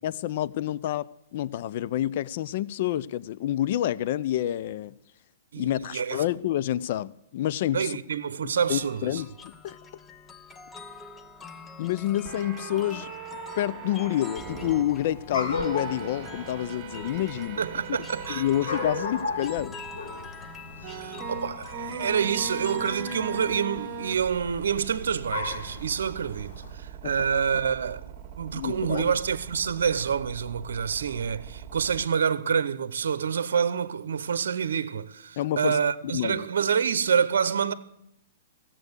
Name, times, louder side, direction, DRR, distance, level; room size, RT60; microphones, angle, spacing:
voice 1, 0.0-1.1 1.3-5.0 5.6-7.9 8.7-9.8 11.8-13.1 13.6-17.6 18.3-19.7 28.5-29.1 35.4-35.8 36.1-36.5, left 12 dB, 55° left, 0.5 m, -28 dB
voice 2, 5.5-6.2 7.7-9.2 17.6-18.7 20.8-28.0 28.4-37.7, right 7 dB, 75° right, 0.8 m, -27 dB
sound 1, 8.7-23.6, left 3 dB, 15° left, 0.9 m, -45 dB
sound 2, 12.2-14.8 15.6-19.0 19.6-19.7 20.8-32.0, right 6 dB, 35° right, 1.8 m, -40 dB
sound 3, 14.5-26.7, left 3 dB, 75° left, 4.6 m, -37 dB
15.5 x 7.6 x 8.1 m
hypercardioid pair, 130°, 0 cm